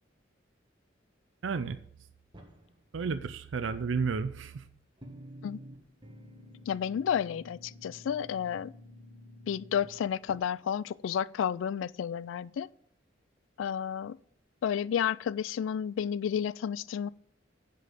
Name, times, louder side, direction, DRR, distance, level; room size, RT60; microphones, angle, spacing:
voice 1, 1.4-1.8 2.9-4.6, right 5 dB, 75° right, 0.5 m, -32 dB
sound 1, 2.3-3.4 3.7-4.5 5.0-10.4, equal, 25° right, 1.4 m, -51 dB
voice 2, 6.7-8.7 9.5-12.7 13.6-14.2 14.6-17.1, left 8 dB, 80° left, 0.3 m, -31 dB
7.6 x 5.3 x 7.3 m
head